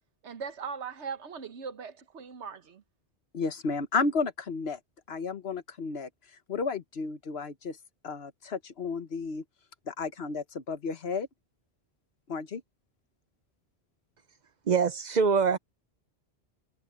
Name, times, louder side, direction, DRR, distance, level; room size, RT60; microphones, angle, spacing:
voice 1, 0.2-2.8, right 6 dB, 90° right, 1.4 m, -39 dB
voice 2, 3.3-4.8 5.1-6.1 6.5-7.8 8.0-9.4 9.9-11.3 12.3-12.6, left 4 dB, 65° left, 1.4 m, -32 dB
voice 3, 14.7-15.6, right 5 dB, 50° right, 0.6 m, -24 dB
omnidirectional pair, 1.1 m